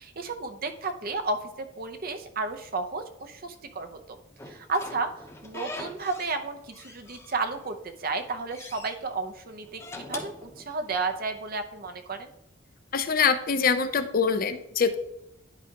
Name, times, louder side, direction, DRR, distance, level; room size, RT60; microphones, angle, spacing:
voice 1, 0.0-4.2 4.5-12.3, right 3 dB, 50° right, 7 dB, 0.8 m, -32 dB
Slam / Squeak, 4.4-6.4 6.7-7.7 8.1-9.0 9.6-11.2, left 2 dB, 15° left, 0.8 m, -42 dB
voice 2, 12.9-15.0, left 5 dB, 50° left, 9 dB, 0.6 m, -24 dB
10.5 x 4.8 x 2.9 m, 0.83 s
head